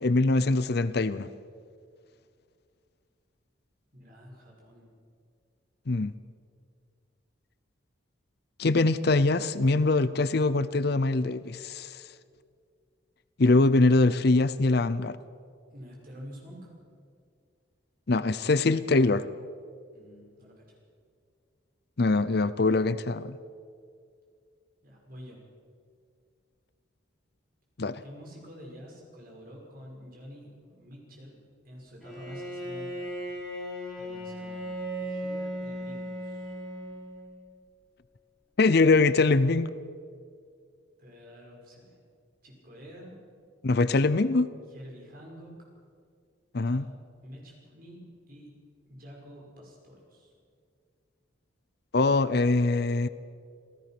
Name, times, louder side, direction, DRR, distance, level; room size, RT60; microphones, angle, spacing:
voice 1, 0.0-1.3 5.9-6.1 8.6-12.0 13.4-15.2 18.1-19.2 22.0-23.4 27.8-28.0 38.6-39.7 43.6-44.5 46.5-46.8 51.9-53.1, left 3 dB, 55° left, 15 dB, 0.6 m, -23 dB
voice 2, 3.9-4.9 15.7-16.8 19.9-20.7 24.8-25.4 28.0-31.4 31.6-33.2 34.0-36.6 41.0-42.0 42.4-43.2 44.7-45.5 46.7-46.8 47.2-48.5 48.9-50.3, equal, 45° right, -2 dB, 6.0 m, -48 dB
Bowed string instrument, 32.0-37.4, equal, 5° left, 3.9 m, -37 dB
27.5 x 16.0 x 6.1 m, 2.2 s
head